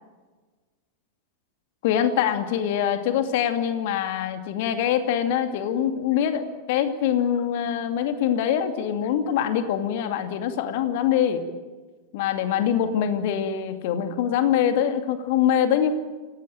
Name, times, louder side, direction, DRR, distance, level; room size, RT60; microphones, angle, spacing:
voice 1, 1.8-11.4 12.1-15.9, left 9 dB, 50° left, 7 dB, 2.5 m, -24 dB
27.5 x 18.0 x 9.1 m, 1.3 s
figure-of-eight pair, 90°, 0 cm